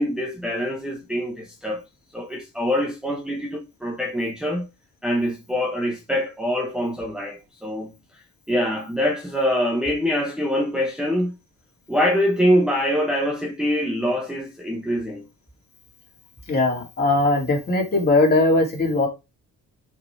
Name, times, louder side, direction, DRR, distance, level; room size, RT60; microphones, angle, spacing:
voice 1, 0.0-1.8 2.1-4.7 5.0-7.9 8.5-11.4 11.9-15.3, equal, ahead, 1.2 m, -24 dB
voice 2, 16.5-19.1, left 2 dB, 25° left, 3.1 m, -19 dB
5.8 x 5.4 x 4.8 m
cardioid pair, 150°, 35 cm